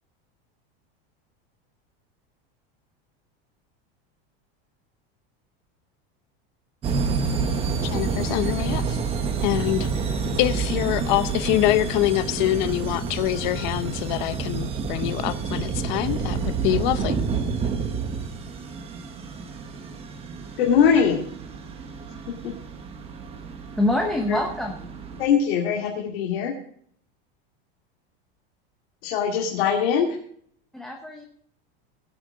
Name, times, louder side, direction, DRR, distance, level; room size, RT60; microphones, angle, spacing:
sound 1, 6.8-25.3, right 5 dB, 20° right, 1.1 m, -29 dB
voice 1, 7.8-9.0 9.4-9.9 10.4-17.2, left 15 dB, 50° left, 0.7 m, -25 dB
voice 2, 20.6-21.2 24.3-24.4 25.2-26.5 29.0-30.1, left 7 dB, 80° left, 2.4 m, -21 dB
voice 3, 23.7-24.9 30.7-31.3, left 1 dB, ahead, 0.7 m, -25 dB
18.5 x 8.2 x 3.8 m
supercardioid pair, 175°, 30 cm